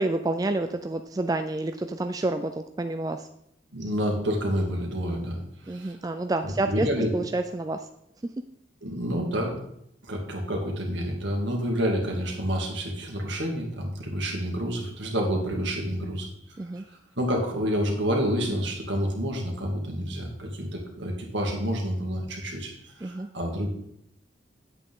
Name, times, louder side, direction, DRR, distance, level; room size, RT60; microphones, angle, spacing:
voice 1, 0.0-3.3 5.7-6.9 7.1-7.9 16.6-16.8 23.0-23.3, right 2 dB, 20° right, 7 dB, 0.3 m, -29 dB
voice 2, 3.7-5.4 5.6-6.0 6.4-7.1 8.8-9.6 10.0-16.3 17.2-23.7, equal, 70° right, 0 dB, 2.2 m, -28 dB
9.3 x 8.0 x 3.7 m, 0.76 s
head